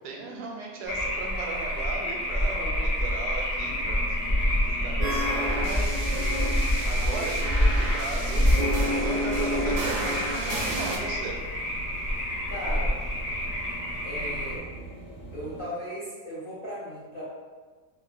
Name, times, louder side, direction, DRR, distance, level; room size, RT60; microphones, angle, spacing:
voice 1, 0.0-6.2 6.6-11.4, right 3 dB, 85° right, 0 dB, 1.2 m, -37 dB
sound 1, 0.8-14.6, equal, 30° left, 0.8 m, -27 dB
voice 2, 2.4-2.9 12.5-13.0 14.0-14.7 15.3-17.2, equal, 60° left, -9 dB, 0.5 m, -37 dB
sound 2, 3.6-15.6, equal, 90° left, 1.7 m, -40 dB
sound 3, 5.0-11.0, right 1 dB, 70° right, 0.7 m, -31 dB
4.2 x 2.1 x 2.4 m, 1.4 s
omnidirectional pair, 1.8 m